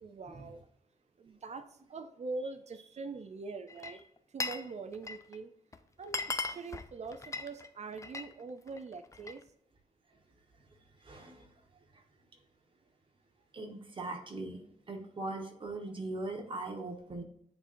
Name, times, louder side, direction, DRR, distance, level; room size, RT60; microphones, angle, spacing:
voice 1, 0.0-0.7 1.2-4.0 4.3-5.5 6.0-6.2 6.5-9.4, right 3 dB, 55° right, 9 dB, 0.5 m, -43 dB
Glass, 3.7-4.7 4.9-5.4 5.7-5.8 6.0-8.3 8.7-9.4, left 3 dB, 20° left, 0.4 m, -38 dB
voice 2, 11.0-11.5 13.5-14.6 14.9-17.2, right 2 dB, 40° right, 2 dB, 1.5 m, -40 dB
9.6 x 4.3 x 2.7 m, 0.72 s
wide cardioid pair, 155°, 14 cm